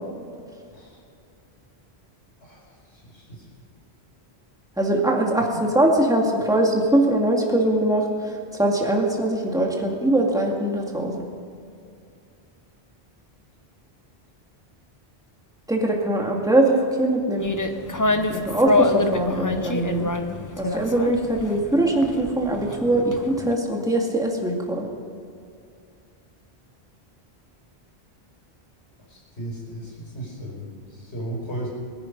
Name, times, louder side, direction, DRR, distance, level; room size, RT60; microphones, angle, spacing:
voice 1, 2.4-3.5 29.1-31.7, right 1 dB, 80° left, -4 dB, 5.4 m, -36 dB
voice 2, 4.8-11.3 15.7-17.5 18.3-20.1 20.6-24.9, right 1 dB, 5° right, -1 dB, 2.1 m, -22 dB
sound 1, 17.4-23.5, left 3 dB, 20° left, 0.7 m, -26 dB
22.5 x 10.5 x 5.4 m, 2.4 s
omnidirectional pair, 1.1 m